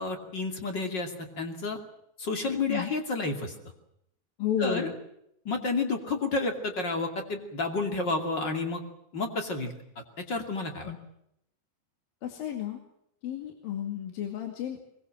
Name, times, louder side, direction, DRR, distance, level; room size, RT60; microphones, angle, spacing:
voice 1, 0.0-1.8 2.2-3.5 4.6-4.9 5.4-8.8 9.1-9.7 10.3-10.9, left 3 dB, 30° left, 5 dB, 2.4 m, -30 dB
voice 2, 4.4-4.9 10.9-11.0 12.2-12.8 13.2-14.8, left 9 dB, 60° left, 4 dB, 3.7 m, -32 dB
22.0 x 22.0 x 7.6 m, 0.77 s
omnidirectional pair, 5.1 m